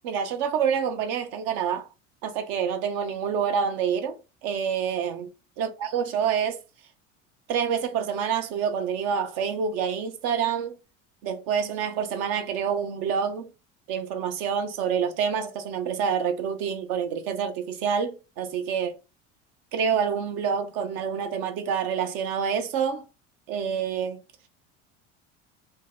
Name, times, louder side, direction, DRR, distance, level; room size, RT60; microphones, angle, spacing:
voice 1, 0.0-1.9 2.2-5.3 5.6-6.6 7.5-10.7 11.2-13.5 13.9-19.0 19.7-23.0 23.5-24.2, right 7 dB, 60° right, 0.7 m, -27 dB
2.7 x 2.0 x 3.5 m
hypercardioid pair, 75°, 37 cm